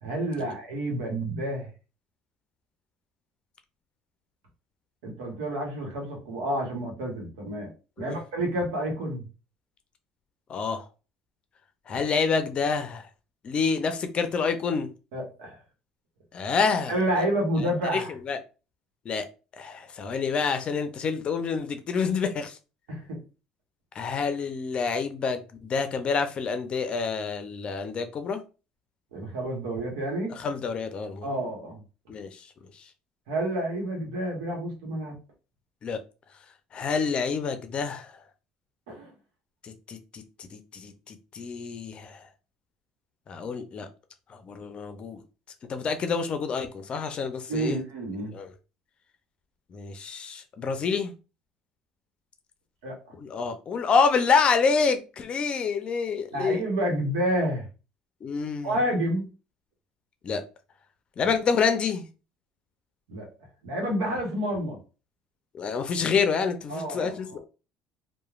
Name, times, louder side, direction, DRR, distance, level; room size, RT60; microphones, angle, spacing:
voice 1, 0.0-1.7 5.0-7.7 8.0-9.2 11.9-12.1 15.1-15.6 16.9-18.1 22.9-23.2 29.1-30.3 31.2-31.8 33.3-35.2 38.9-39.1 47.5-48.3 52.8-53.0 56.3-57.6 58.6-59.3 61.2-61.3 63.1-63.3 63.6-64.8 66.7-67.4, right 1 dB, 90° right, 1.0 m, -29 dB
voice 2, 10.5-10.8 11.9-13.1 13.4-14.9 16.3-17.0 17.9-18.4 19.1-19.3 19.6-22.6 24.0-28.4 30.3-31.3 32.1-32.5 35.8-36.0 36.7-38.1 39.6-40.2 40.5-42.3 43.3-43.9 44.3-45.2 45.7-47.8 48.3-48.5 49.7-51.1 53.2-56.6 58.2-58.7 60.2-60.4 61.2-62.1 65.6-67.4, left 5 dB, 45° left, 0.5 m, -27 dB
3.0 x 2.2 x 2.3 m
supercardioid pair, 85°, 3 cm